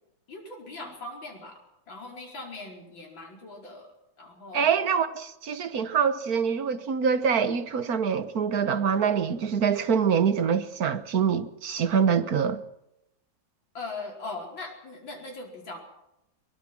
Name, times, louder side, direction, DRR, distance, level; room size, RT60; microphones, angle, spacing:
voice 1, 0.3-1.6 1.9-3.9 4.2-4.9 13.7-15.8, left 3 dB, 70° left, 5.6 m, -40 dB
voice 2, 4.5-12.6, right 7 dB, 50° right, 1.6 m, -25 dB
23.0 x 21.0 x 6.1 m
omnidirectional pair, 2.2 m